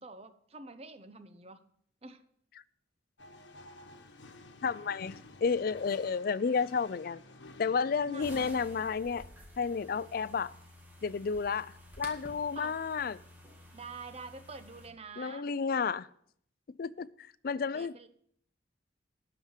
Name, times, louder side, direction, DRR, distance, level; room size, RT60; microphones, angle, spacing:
voice 1, 0.0-1.6 2.0-2.2 8.0-8.6 12.5-12.7 13.7-15.5 17.7-18.1, right 3 dB, 35° right, 0.8 m, -47 dB
sound 1, 3.2-8.5, left 2 dB, 85° left, 1.2 m, -52 dB
voice 2, 4.6-7.2 7.6-9.2 9.6-10.5 11.0-13.2 15.2-16.1 16.8-17.1 17.4-18.0, left 5 dB, 55° left, 0.4 m, -31 dB
sound 2, 8.2-14.9, left 1 dB, 10° right, 1.8 m, -52 dB
12.0 x 4.9 x 8.0 m
head